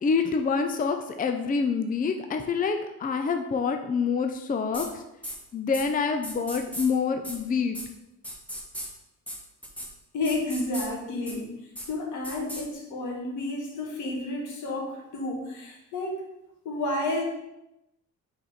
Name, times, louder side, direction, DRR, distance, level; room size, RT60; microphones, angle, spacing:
voice 1, 0.0-5.0 5.5-7.8, left 5 dB, 30° left, 6 dB, 0.5 m, -27 dB
sound 1, 4.7-4.9 5.2-5.3 5.7-5.8 6.2-6.9 7.2-7.4 7.7-7.8 8.2-8.9 9.3-9.4 9.6-9.9 10.2-10.9 11.3-11.4 11.7-11.9 12.2-12.6, equal, 5° left, 1.5 m, -36 dB
voice 2, 10.1-11.5 11.9-16.2 16.6-17.2, left 2 dB, 80° left, 0 dB, 1.6 m, -31 dB
4.9 x 4.1 x 5.0 m, 0.91 s
cardioid pair, 90°, 30 cm